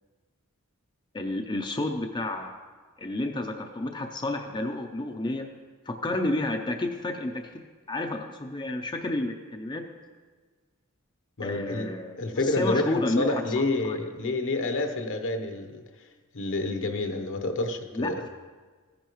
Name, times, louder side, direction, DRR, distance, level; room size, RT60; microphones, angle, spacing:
voice 1, 1.1-2.5 3.0-5.5 5.9-7.6 7.9-9.8 11.4-13.4 13.8-14.0 17.9-18.3, left 2 dB, 20° left, 3 dB, 0.5 m, -30 dB
voice 2, 11.4-15.8 16.3-18.1, left 2 dB, 65° left, 6 dB, 0.9 m, -29 dB
15.0 x 10.0 x 3.1 m, 1.5 s
head